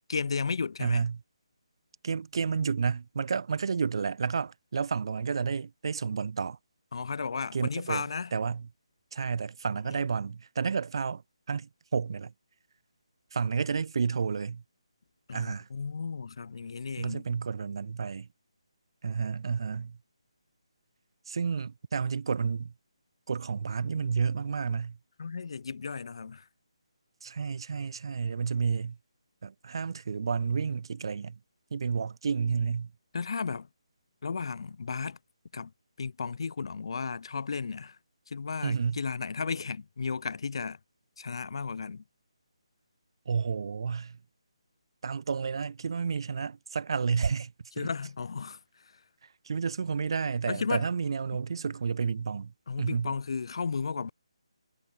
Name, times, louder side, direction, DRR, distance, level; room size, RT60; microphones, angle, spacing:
voice 1, 0.1-1.0 6.9-8.3 15.3-17.3 25.2-26.5 33.1-33.7 34.2-35.2 35.5-35.7 36.0-38.0 38.3-40.8 41.2-42.0 47.8-49.0 50.5-50.9 52.7-54.1, left 5 dB, 55° left, 2.7 m, -34 dB
voice 2, 0.8-1.2 2.0-6.6 7.5-8.1 8.3-8.7 9.1-11.2 11.5-12.3 13.3-14.6 15.3-15.7 17.0-18.3 19.0-20.0 21.3-22.7 23.3-25.0 27.2-29.0 29.4-31.4 31.7-32.9 38.6-39.0 43.3-44.2 45.0-47.9 49.4-53.1, right 5 dB, 50° right, 2.4 m, -31 dB
hypercardioid pair, 165°, 3 cm